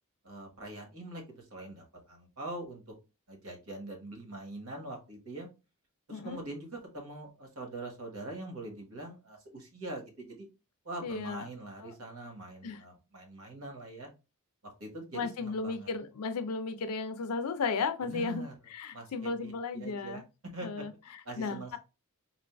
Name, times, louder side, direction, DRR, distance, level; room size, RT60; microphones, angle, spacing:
voice 1, 0.2-2.8 3.3-5.5 6.1-10.5 10.8-14.1 14.6-15.9 18.0-18.5 18.9-20.2 20.5-20.9 21.2-21.8, right 2 dB, 70° right, 1.3 m, -43 dB
voice 2, 11.0-11.5 11.8-11.9 12.6-12.8 15.1-20.2 20.6-20.9 21.4-21.8, left 4 dB, 90° left, 0.5 m, -35 dB
4.4 x 2.4 x 2.3 m
head